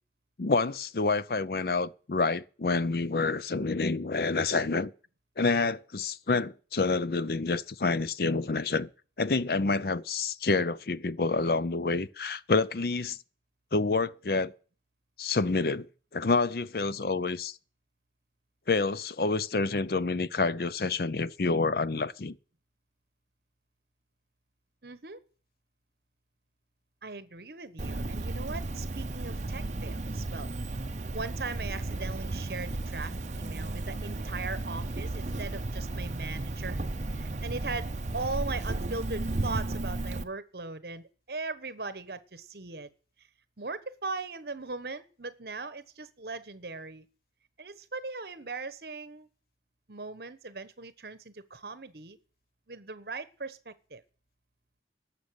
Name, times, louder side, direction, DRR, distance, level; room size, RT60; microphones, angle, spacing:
voice 1, 0.4-4.9 5.4-8.9 9.2-13.2 13.7-14.5 15.2-17.5 18.7-22.4, left 3 dB, 55° left, 0.5 m, -28 dB
voice 2, 24.8-25.2 27.0-30.5 31.1-36.8 37.1-42.9 43.6-47.1 47.6-49.3 49.9-52.2 52.7-54.0, right 3 dB, 60° right, 1.1 m, -39 dB
Cricket, 27.8-40.2, right 2 dB, 40° right, 0.8 m, -34 dB
11.5 x 6.9 x 9.7 m
head